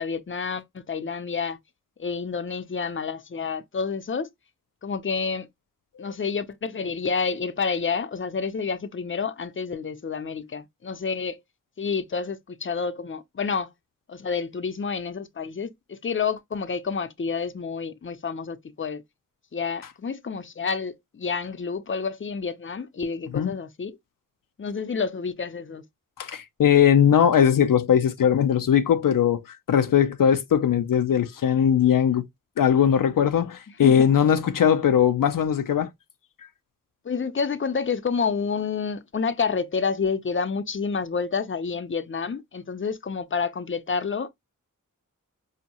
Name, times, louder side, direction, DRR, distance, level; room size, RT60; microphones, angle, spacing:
voice 1, 0.0-1.6 2.0-4.3 4.8-5.5 6.0-11.4 11.8-13.7 14.1-19.0 19.5-24.0 24.6-25.8 33.8-34.0 37.0-44.3, left 5 dB, 40° left, 0.6 m, -29 dB
voice 2, 26.2-32.2 32.6-35.9, left 8 dB, 80° left, 0.5 m, -20 dB
5.0 x 2.7 x 2.8 m
wide cardioid pair, 50°, 32 cm